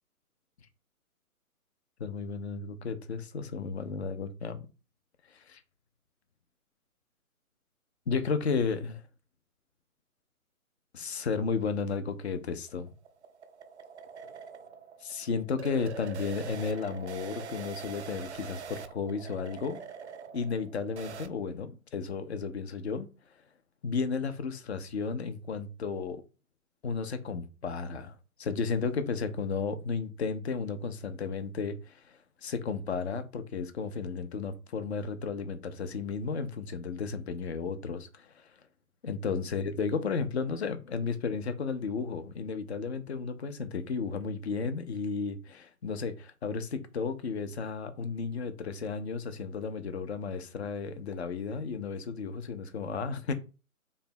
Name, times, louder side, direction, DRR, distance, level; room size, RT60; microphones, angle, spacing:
voice 1, 2.0-4.6 5.3-5.6 8.1-9.0 10.9-12.9 15.0-19.8 20.3-23.1 23.8-26.2 26.8-32.0 32.4-38.3 39.0-53.3, left 5 dB, 50° left, 0.6 m, -33 dB
sound 1, 12.3-21.3, right 6 dB, 50° right, 0.4 m, -44 dB
3.2 x 2.3 x 4.1 m
figure-of-eight pair, 140°, 44 cm